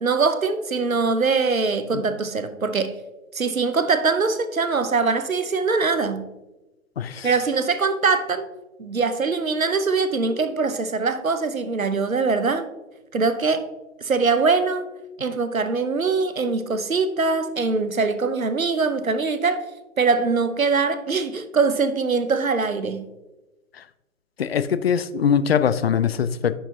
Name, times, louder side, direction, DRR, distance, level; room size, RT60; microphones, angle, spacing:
voice 1, 0.0-3.0 3.3-6.3 7.2-8.5 8.8-12.7 13.1-13.7 14.0-14.9 15.2-19.6 20.0-23.1, right 4 dB, 85° right, 12 dB, 0.9 m, -22 dB
voice 2, 7.0-7.3 24.4-26.6, left 7 dB, 50° left, 14 dB, 0.5 m, -22 dB
9.8 x 5.8 x 2.7 m, 1.0 s
figure-of-eight pair, 125°, 40 cm